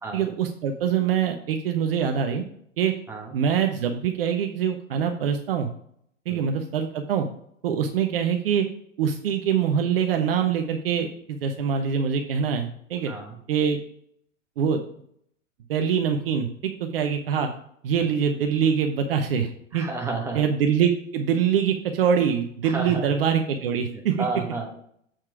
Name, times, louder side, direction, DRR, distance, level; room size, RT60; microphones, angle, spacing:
voice 1, 0.1-2.4 2.8-2.9 3.3-5.7 6.3-7.3 7.6-8.7 9.0-13.1 13.5-13.8 14.6-14.8 15.7-17.5 17.8-19.9 20.3-24.2, right 7 dB, 45° right, 5 dB, 0.8 m, -24 dB
voice 2, 19.7-20.4 22.6-23.1 23.9-24.7, right 3 dB, 5° right, 1 dB, 1.3 m, -31 dB
7.5 x 4.5 x 4.7 m, 0.67 s
figure-of-eight pair, 105°, 39 cm